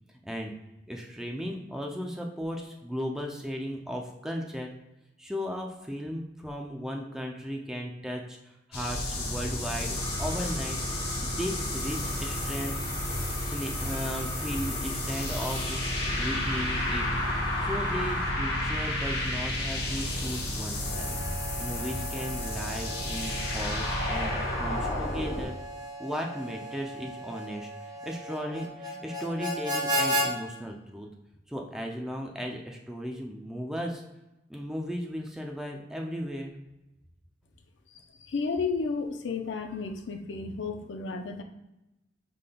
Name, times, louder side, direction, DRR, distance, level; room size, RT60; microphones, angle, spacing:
voice 1, 0.2-0.5 0.9-4.7 5.2-10.8 11.2-12.9 13.4-17.1 17.6-21.2 21.6-25.6 26.0-31.1 31.5-34.0 34.5-36.5, equal, 5° right, 1 dB, 0.4 m, -36 dB
sound 1, 8.7-25.4, left 1 dB, 60° left, 1.0 m, -31 dB
sound 2, 9.9-18.3, left 1 dB, 25° left, 0.9 m, -41 dB
Harmonica, 20.8-30.3, equal, 25° right, 1.5 m, -35 dB
voice 2, 38.3-41.4, left 4 dB, 80° left, 6 dB, 0.5 m, -32 dB
5.0 x 3.7 x 2.2 m, 0.95 s
head